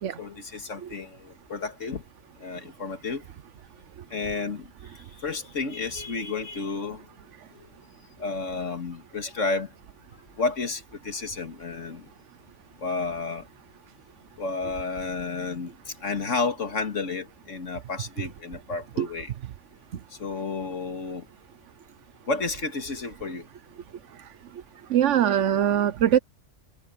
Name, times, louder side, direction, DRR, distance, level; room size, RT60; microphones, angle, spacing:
voice 1, 0.2-2.0 2.4-3.2 4.1-4.7 5.2-7.1 8.2-9.7 10.4-12.1 12.8-13.5 14.4-19.3 20.2-21.3 22.3-23.5, left 4 dB, 75° left, 2.4 m, -31 dB
voice 2, 24.9-26.2, right 10 dB, 75° right, 1.1 m, -22 dB
omnidirectional pair, 1.3 m